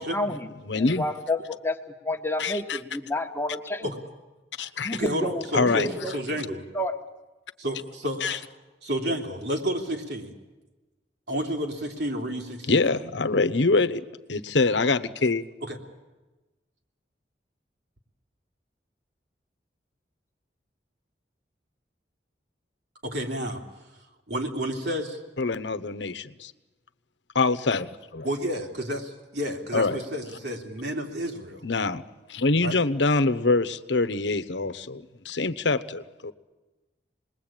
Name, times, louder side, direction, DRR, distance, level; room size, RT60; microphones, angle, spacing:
voice 1, 0.0-0.5 0.7-1.8 2.0-3.9 4.8-7.0, left 1 dB, 15° left, 5 dB, 1.3 m, -30 dB
voice 2, 0.6-1.0 2.4-2.8 4.6-5.0 5.5-5.9 8.2-8.4 12.7-15.4 25.4-26.5 27.3-28.3 29.7-30.0 31.6-32.0 32.3-36.3, left 3 dB, 85° left, 12 dB, 1.0 m, -25 dB
voice 3, 4.9-6.6 7.6-8.5 8.8-10.3 11.3-12.8 15.6-15.8 23.0-23.6 24.3-25.2 28.2-31.6 32.6-32.8, equal, 70° right, 2 dB, 3.3 m, -31 dB
27.5 x 20.5 x 9.0 m, 1.2 s
head